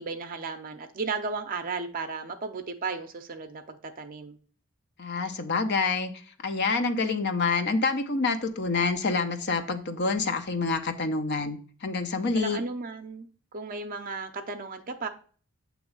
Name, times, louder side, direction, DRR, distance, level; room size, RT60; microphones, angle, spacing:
voice 1, 0.0-4.4 12.4-13.3 13.5-15.1, right 4 dB, 40° right, 0.6 m, -34 dB
voice 2, 5.0-6.1 6.4-12.6, left 4 dB, 55° left, 0.7 m, -27 dB
7.9 x 3.0 x 5.3 m
head